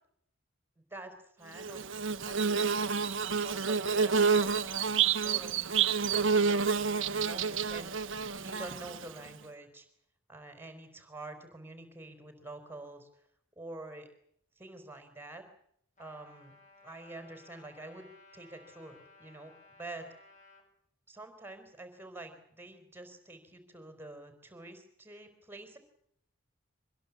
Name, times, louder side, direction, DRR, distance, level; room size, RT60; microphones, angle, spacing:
voice 1, 0.9-1.9 2.2-4.4 4.8-9.9 10.3-13.1 13.6-14.1 14.6-15.4 16.0-16.5 16.8-19.5 19.8-20.1 21.1-25.8, right 2 dB, 10° right, 7 dB, 4.0 m, -47 dB
Bird / Buzz, 1.6-9.3, right 6 dB, 55° right, 1.1 m, -29 dB
Trumpet, 16.0-20.6, left 2 dB, 35° left, 7.7 m, -58 dB
25.0 x 21.0 x 8.5 m, 0.69 s
head